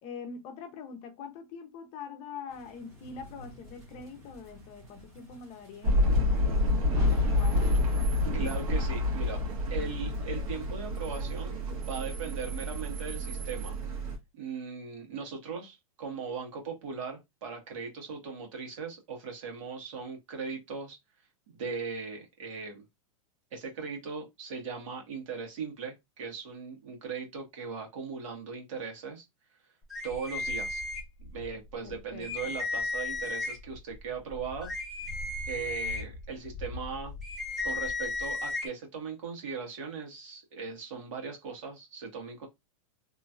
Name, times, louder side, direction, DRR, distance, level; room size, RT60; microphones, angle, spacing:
voice 1, 0.0-7.7 31.8-32.5, left 5 dB, 35° left, 0.7 m, -44 dB
sound 1, 2.5-14.2, equal, 20° right, 1.4 m, -48 dB
sound 2, 5.8-14.1, left 2 dB, 80° right, 1.5 m, -28 dB
voice 2, 8.3-9.4 9.7-11.5 11.9-13.8 14.3-21.0 21.5-22.8 23.5-29.2 30.0-30.8 31.2-34.7 35.5-37.1 37.6-42.5, right 5 dB, 65° right, 1.6 m, -38 dB
sound 3, 29.9-31.5 31.9-32.0 32.2-33.8 34.3-38.7, left 3 dB, ahead, 0.9 m, -35 dB
3.0 x 2.7 x 2.4 m
supercardioid pair, 145°, 18 cm